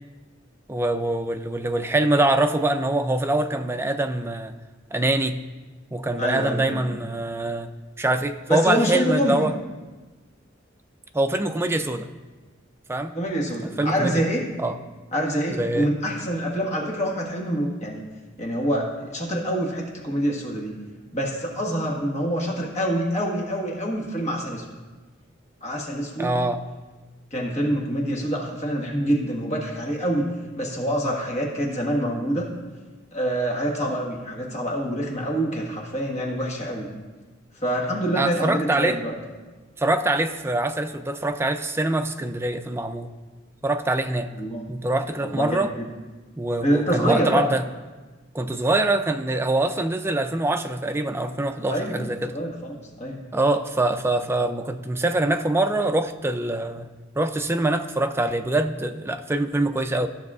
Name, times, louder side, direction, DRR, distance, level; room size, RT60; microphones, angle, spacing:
voice 1, 0.7-4.5 4.9-5.4 5.9-7.7 8.0-9.5 11.1-12.1 12.9-13.1 13.8-14.2 14.6-14.8 15.5-15.9 26.2-26.6 38.2-39.0 39.8-43.1 43.6-44.3 44.7-45.7 46.4-47.7 48.3-52.3 53.3-56.9 57.2-60.1, right 2 dB, 10° right, 7 dB, 0.4 m, -24 dB
voice 2, 6.2-6.8 8.5-9.5 13.1-14.4 15.1-18.0 18.4-20.7 21.1-24.7 25.6-26.3 27.3-30.3 30.6-32.5 33.1-36.9 37.6-39.1 44.4-44.6 45.2-45.9 46.6-47.4 51.7-52.0 52.3-53.2, equal, 35° left, -1 dB, 1.5 m, -26 dB
14.5 x 6.4 x 2.4 m, 1.3 s
head